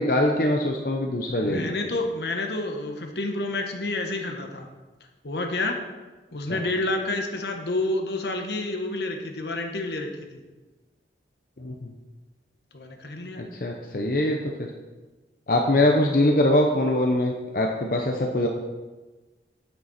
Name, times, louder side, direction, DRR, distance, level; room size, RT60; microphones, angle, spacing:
voice 1, 0.0-1.7 6.5-6.6 11.6-11.9 13.4-14.4 15.5-18.5, left 1 dB, 50° left, 1 dB, 0.8 m, -23 dB
voice 2, 1.4-4.7 5.2-5.8 6.3-10.1 12.7-13.4, left 2 dB, 75° left, 4 dB, 1.2 m, -29 dB
9.3 x 8.4 x 4.3 m, 1.2 s
head